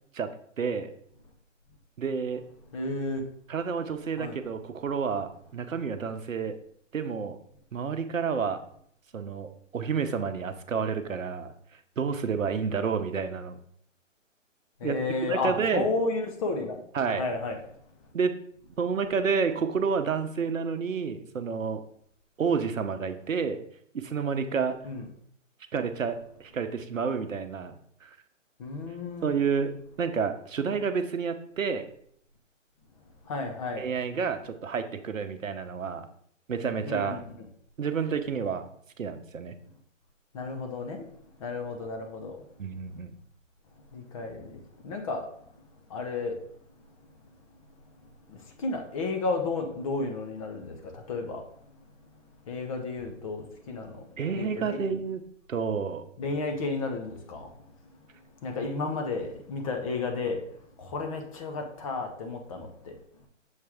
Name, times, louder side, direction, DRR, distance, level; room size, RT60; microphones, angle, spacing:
voice 1, 0.6-0.9 2.0-2.4 3.5-6.6 6.9-7.4 7.7-8.6 9.1-11.5 12.0-13.6 14.8-15.9 16.9-17.2 18.1-18.3 18.8-21.8 22.4-23.6 23.9-24.8 25.7-28.1 29.2-29.7 30.0-31.9 33.8-36.1 36.5-37.2 37.8-38.6 39.0-39.5 42.6-43.1 54.2-55.2 55.5-56.0, right 6 dB, 85° right, 9 dB, 0.8 m, -29 dB
voice 2, 2.7-3.3 4.2-4.4 14.8-17.6 24.8-25.1 28.6-29.3 33.2-33.9 36.8-37.5 40.3-41.1 41.4-42.4 42.7-42.8 43.9-45.5 45.9-46.4 48.3-51.8 52.2-54.1 54.3-54.8 56.2-57.5 58.4-63.0, left 3 dB, 25° left, 4 dB, 0.8 m, -33 dB
6.5 x 4.4 x 3.6 m, 0.64 s
hypercardioid pair, 145°, 39 cm